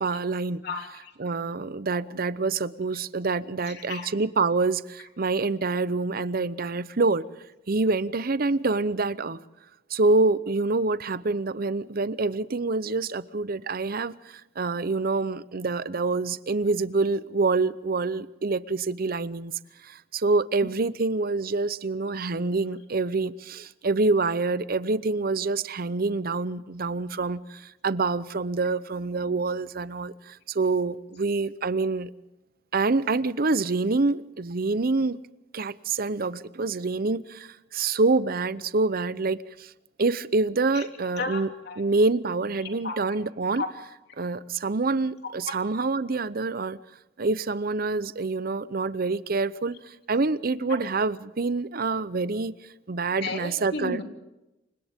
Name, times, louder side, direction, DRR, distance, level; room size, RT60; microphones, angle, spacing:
voice 1, 0.0-0.6 1.2-7.2 7.7-9.4 9.9-19.5 19.8-32.1 32.7-35.2 35.5-39.7 40.0-41.5 41.8-43.6 44.2-46.8 47.2-52.5 52.9-54.0, right 3 dB, 55° right, 0.7 m, -26 dB
voice 2, 0.6-1.1 3.7-4.1 40.7-40.9 41.2-41.8 42.6-43.0 43.6-43.7 53.2-54.0, left 3 dB, 65° left, 3.4 m, -33 dB
28.5 x 25.0 x 3.6 m
head